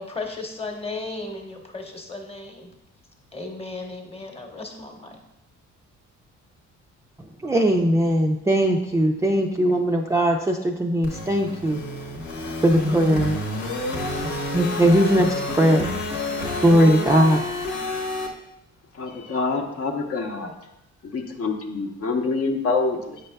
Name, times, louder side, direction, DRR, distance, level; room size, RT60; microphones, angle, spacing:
voice 1, 0.0-2.7 3.3-5.2, left 3 dB, 20° left, 2 dB, 1.0 m, -35 dB
voice 2, 7.4-11.8 12.6-13.4 14.5-15.9 16.6-17.4, equal, 10° right, 0 dB, 0.4 m, -19 dB
sound 1, 11.0-18.3, left 2 dB, 80° left, 1.1 m, -28 dB
voice 3, 19.0-20.5 21.0-23.2, left 3 dB, 50° left, 3 dB, 0.8 m, -26 dB
7.9 x 5.3 x 2.2 m, 0.84 s
cardioid pair, 90°, 30 cm